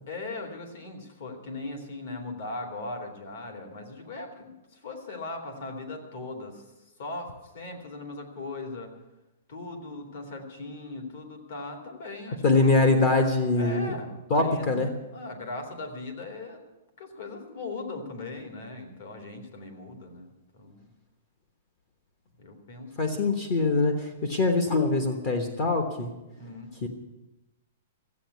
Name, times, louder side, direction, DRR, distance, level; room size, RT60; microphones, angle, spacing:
voice 1, 0.1-6.6 7.0-8.9 9.5-12.6 13.6-14.8 15.1-16.6 17.0-20.9 22.4-23.1 26.4-26.7, left 2 dB, 50° left, 4 dB, 2.7 m, -39 dB
voice 2, 12.4-13.9 14.3-14.9 23.0-26.1 26.8-26.9, left 3 dB, 30° left, 4 dB, 1.2 m, -23 dB
14.5 x 8.3 x 9.4 m, 1.0 s
hypercardioid pair, 175°, 0 cm